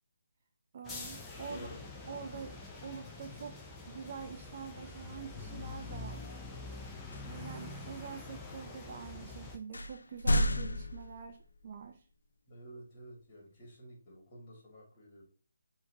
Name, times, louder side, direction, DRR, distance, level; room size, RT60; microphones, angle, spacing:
voice 1, 0.7-1.7 2.1-3.6 3.9-6.3 7.2-12.1, right 6 dB, 45° right, 5 dB, 0.4 m, -45 dB
sound 1, 0.8-9.6, left 3 dB, 10° left, 0.5 m, -45 dB
sound 2, 5.8-6.1 7.1-7.5 8.2-8.3 9.1-9.2 9.7-11.7, equal, 75° left, 0.4 m, -32 dB
voice 2, 12.5-15.2, right 1 dB, 30° left, -2 dB, 2.0 m, -51 dB
5.5 x 2.8 x 2.8 m, 0.39 s
figure-of-eight pair, 155°, 0 cm